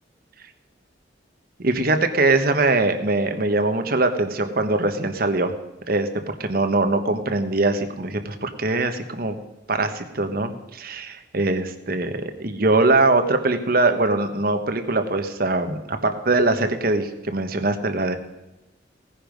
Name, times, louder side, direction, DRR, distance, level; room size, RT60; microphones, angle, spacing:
voice 1, 1.6-5.5 5.9-6.1 6.4-9.4 9.7-18.2, right 2 dB, 50° right, 7 dB, 1.3 m, -22 dB
17.5 x 10.0 x 5.3 m, 1.0 s
head